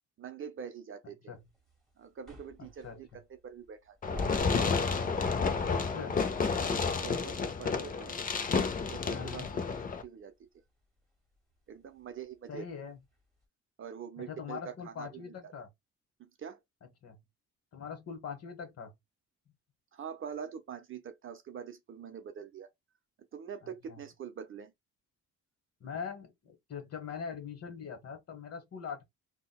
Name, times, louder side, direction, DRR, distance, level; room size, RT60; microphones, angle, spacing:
voice 1, 0.2-1.3 2.0-4.5 5.9-6.1 7.0-8.2 8.9-9.5 10.0-10.5 11.7-12.7 13.8-15.5 16.2-16.6 19.9-22.7 23.3-24.7, right 7 dB, 45° right, 0.5 m, -44 dB
sound 1, 1.4-13.4, left 2 dB, ahead, 1.6 m, -50 dB
Fireworks, 4.0-10.0, left 5 dB, 30° left, 0.5 m, -31 dB
voice 2, 5.7-6.2 9.1-9.5 12.5-13.0 14.2-15.7 17.0-17.2 17.7-18.9 23.6-24.0 25.8-29.0, left 6 dB, 55° left, 1.2 m, -42 dB
3.8 x 2.2 x 2.2 m
cardioid pair, 90°, 30 cm